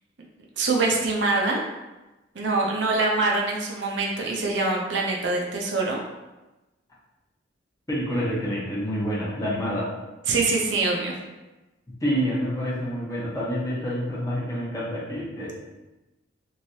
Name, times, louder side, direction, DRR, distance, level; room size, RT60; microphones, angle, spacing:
voice 1, 0.6-1.6 2.3-6.0 10.3-11.2, right 3 dB, 65° right, -1 dB, 0.5 m, -24 dB
voice 2, 7.9-9.9 12.0-15.5, equal, 20° left, -7 dB, 0.8 m, -27 dB
3.1 x 2.6 x 2.7 m, 1.1 s
head